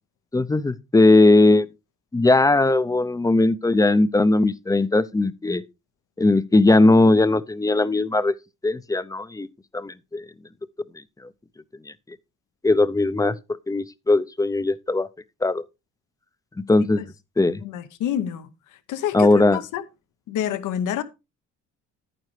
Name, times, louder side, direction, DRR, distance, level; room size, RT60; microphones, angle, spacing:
voice 1, 0.3-1.7 2.1-5.6 6.2-8.3 8.6-9.5 9.7-10.2 12.6-13.4 13.7-15.1 15.4-15.6 16.6-17.0 17.4-17.6 19.1-19.6, left 2 dB, 10° left, 0.5 m, -19 dB
voice 2, 17.6-18.5 18.9-19.8 20.3-21.0, left 10 dB, 85° left, 0.9 m, -28 dB
10.5 x 9.2 x 3.2 m
cardioid pair, 90°, 30 cm